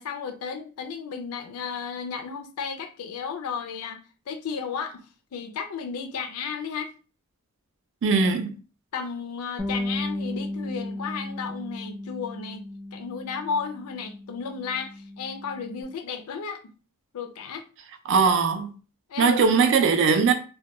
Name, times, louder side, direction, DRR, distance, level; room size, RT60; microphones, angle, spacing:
voice 1, 0.0-5.0 5.3-6.9 8.9-12.7 12.9-16.7 17.1-17.6 19.1-19.4, left 6 dB, 75° left, 0.4 m, -33 dB
voice 2, 8.0-8.5 18.1-18.7 19.2-20.3, right 5 dB, 55° right, 0.4 m, -20 dB
Bass guitar, 9.6-15.8, left 1 dB, ahead, 0.4 m, -35 dB
2.2 x 2.1 x 2.8 m
head